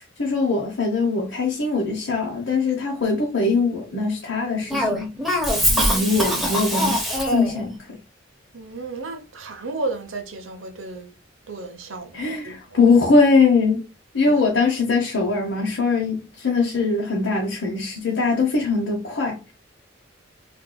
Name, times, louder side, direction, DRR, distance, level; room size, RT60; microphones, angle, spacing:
voice 1, 0.0-5.1 5.7-8.0 12.1-13.9 14.1-19.5, left 4 dB, 65° left, 0.8 m, -21 dB
Cough, 4.7-7.6, equal, ahead, 0.8 m, -22 dB
voice 2, 5.7-6.0 8.5-11.1 11.5-12.2 12.4-12.6 14.3-14.4, right 3 dB, 85° right, 0.8 m, -33 dB
3.8 x 2.6 x 2.2 m
head